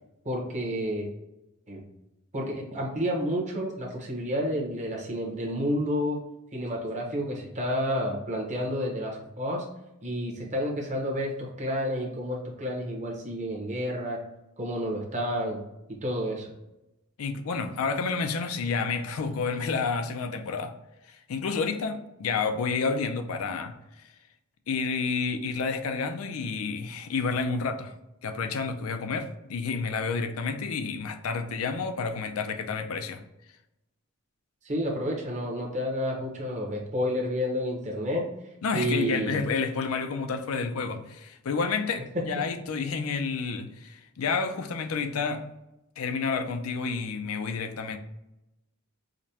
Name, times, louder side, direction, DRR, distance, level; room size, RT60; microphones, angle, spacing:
voice 1, 0.2-1.1 1.7-1.8 2.3-6.2 6.5-9.6 10.0-14.2 14.6-15.6 16.0-16.5 34.6-38.2 38.7-39.4 42.1-42.2, equal, 35° right, 1.0 m, -30 dB
voice 2, 17.2-20.7 21.1-23.7 24.7-27.9 28.2-33.2 38.6-45.5 46.0-48.0, left 4 dB, 80° left, 0.4 m, -30 dB
5.0 x 2.2 x 2.8 m
head